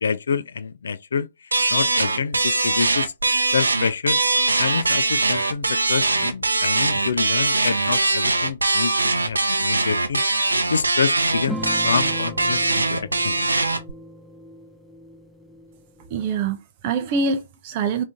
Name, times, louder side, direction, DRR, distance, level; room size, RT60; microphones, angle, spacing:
voice 1, 0.0-1.3 1.7-3.1 3.5-4.2 4.6-10.2 10.7-13.3, left 6 dB, 65° left, 0.4 m, -27 dB
sound 1, 1.5-13.9, right 2 dB, 80° right, 0.6 m, -21 dB
sound 2, 11.5-16.4, right 1 dB, ahead, 0.7 m, -37 dB
voice 2, 16.1-18.0, right 4 dB, 35° right, 0.5 m, -25 dB
3.6 x 2.6 x 3.5 m
figure-of-eight pair, 125°, 0 cm